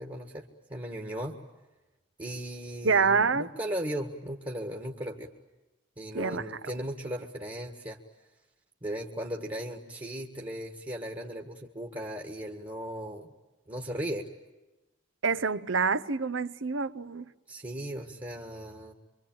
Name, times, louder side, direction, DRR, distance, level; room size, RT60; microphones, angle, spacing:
voice 1, 0.0-1.4 2.2-5.3 6.0-8.0 8.8-13.3 13.7-14.3 17.5-18.9, equal, 25° right, 1.7 m, -37 dB
voice 2, 2.8-3.5 6.1-6.4 15.2-17.3, right 5 dB, 75° right, 0.9 m, -26 dB
26.5 x 25.0 x 9.0 m
head